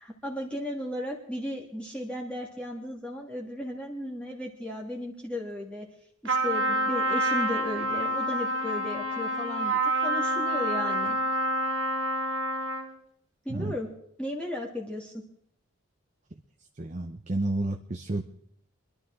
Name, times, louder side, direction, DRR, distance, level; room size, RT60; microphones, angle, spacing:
voice 1, 0.0-5.9 6.2-11.2 13.4-13.9 14.2-15.2, left 1 dB, 5° left, -2 dB, 1.5 m, -35 dB
Trumpet, 6.3-13.0, right 1 dB, 60° right, 1.7 m, -28 dB
voice 2, 16.7-18.2, right 2 dB, 35° right, 5 dB, 0.7 m, -30 dB
24.0 x 11.5 x 3.6 m, 0.70 s
head